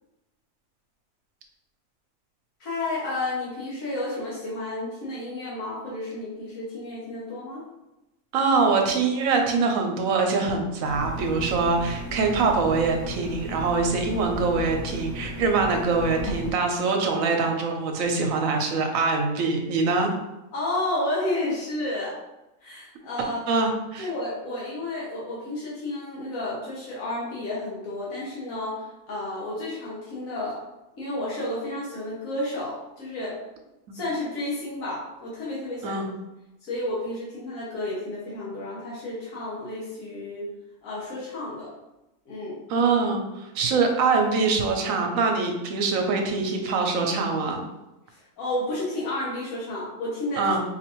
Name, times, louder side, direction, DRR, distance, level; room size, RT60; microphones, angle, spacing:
voice 1, 2.6-7.6 20.5-22.2 22.6-23.4 24.0-30.6 31.0-33.4 33.9-36.0 36.6-40.5 40.8-41.7 42.3-42.6 43.7-43.9 48.1-50.5, left 1 dB, 85° left, -7 dB, 1.4 m, -31 dB
voice 2, 8.3-20.1 23.5-24.1 33.9-34.0 35.8-36.1 42.7-47.6 50.4-50.6, right 4 dB, 80° right, 3 dB, 1.1 m, -24 dB
sound 1, 10.8-16.5, equal, 55° left, 0.8 m, -35 dB
4.3 x 2.5 x 2.9 m, 0.97 s
omnidirectional pair, 1.4 m